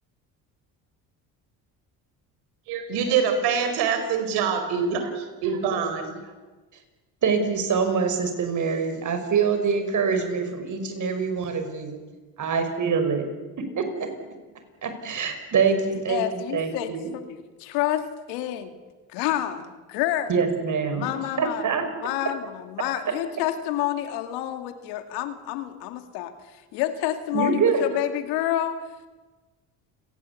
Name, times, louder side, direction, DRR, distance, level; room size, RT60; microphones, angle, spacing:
voice 1, 2.7-6.2, right 6 dB, 80° right, 8 dB, 4.7 m, -25 dB
voice 2, 7.2-12.0 12.4-13.3 13.8-14.1 14.8-17.1 20.3-21.1 21.4-21.8 27.3-27.8, right 5 dB, 50° right, 7 dB, 5.6 m, -25 dB
voice 3, 16.1-18.7 19.1-20.3 20.9-21.6 22.0-26.3 26.7-28.9, left 12 dB, 90° left, 9 dB, 2.3 m, -28 dB
29.0 x 18.5 x 8.4 m, 1.3 s
supercardioid pair, 85°, 39 cm